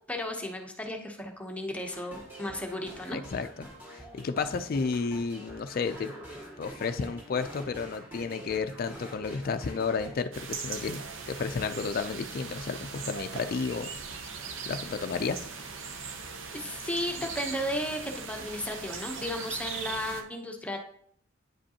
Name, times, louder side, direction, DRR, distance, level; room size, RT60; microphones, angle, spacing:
voice 1, 0.1-3.2 16.5-20.8, left 1 dB, 5° left, 2 dB, 0.8 m, -34 dB
sound 1, 1.8-10.2, right 1 dB, 10° right, 2.0 m, -46 dB
voice 2, 3.1-6.1 6.6-11.0 11.3-13.9 14.7-15.5, left 5 dB, 50° left, 8 dB, 0.4 m, -32 dB
sound 2, 10.3-20.2, right 5 dB, 80° right, 0.7 m, -39 dB
sound 3, 11.1-16.8, right 2 dB, 50° right, 2.4 m, -62 dB
9.4 x 5.1 x 2.8 m, 0.64 s
head